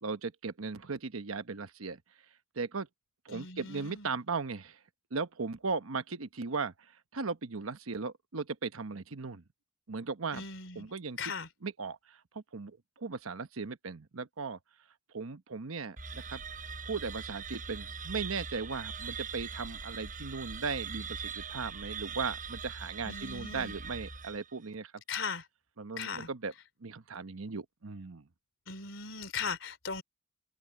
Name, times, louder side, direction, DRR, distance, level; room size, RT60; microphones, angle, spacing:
voice 1, 0.0-2.0 2.5-2.9 3.2-4.8 5.1-9.4 9.9-10.4 10.7-11.3 11.6-14.6 15.1-16.4 16.8-24.9 25.8-26.5 26.8-28.3, right 4 dB, 85° right, 1.0 m, -37 dB
voice 2, 3.3-4.1 10.3-10.9 11.2-11.5 23.0-23.7 25.1-25.4 26.0-26.3 28.7-30.0, left 5 dB, 65° left, 3.8 m, -38 dB
sound 1, 16.0-24.7, right 5 dB, 40° right, 6.4 m, -41 dB
head